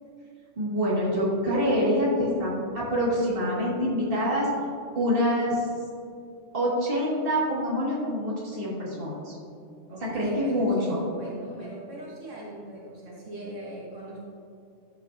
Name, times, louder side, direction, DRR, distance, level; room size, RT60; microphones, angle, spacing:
voice 1, 0.6-4.5 4.9-5.7 6.5-9.4 10.1-11.0, equal, 50° right, -6 dB, 2.2 m, -26 dB
voice 2, 9.9-14.2, right 1 dB, 80° right, -6 dB, 1.7 m, -40 dB
12.0 x 6.3 x 2.7 m, 2.5 s
omnidirectional pair, 1.2 m